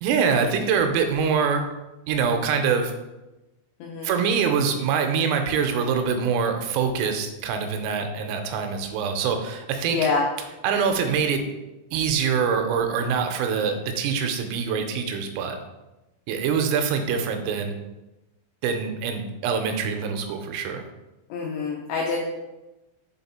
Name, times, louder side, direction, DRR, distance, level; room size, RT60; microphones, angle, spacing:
voice 1, 0.0-1.7 2.1-2.9 4.0-10.1 10.6-11.4 11.9-15.6 16.3-17.7 18.6-20.8, right 6 dB, 85° right, 5 dB, 3.3 m, -24 dB
voice 2, 3.8-4.2 9.9-10.2 21.3-22.2, left 4 dB, 85° left, -2 dB, 2.6 m, -26 dB
7.1 x 4.0 x 4.2 m, 1.0 s
omnidirectional pair, 6.0 m